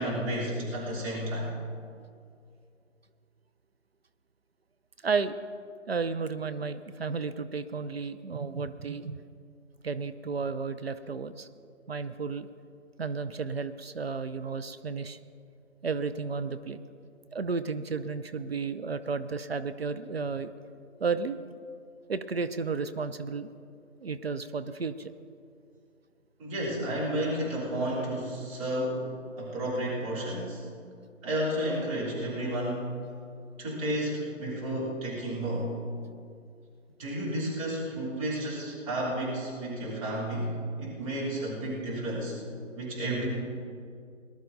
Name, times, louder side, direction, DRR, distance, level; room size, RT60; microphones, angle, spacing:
voice 1, 0.0-1.5 26.4-29.1 29.4-30.6 31.2-32.9 33.6-35.7 37.0-42.3 42.8-43.3, right 1 dB, 25° right, -6 dB, 3.5 m, -32 dB
voice 2, 5.0-5.3 5.9-9.2 9.8-11.5 11.9-12.5 13.0-15.2 15.8-16.8 17.3-20.5 21.0-21.4 22.1-23.5 24.0-25.1, right 5 dB, 50° right, 12 dB, 0.6 m, -32 dB
19.5 x 12.0 x 4.0 m, 2.4 s
figure-of-eight pair, 155°, 39 cm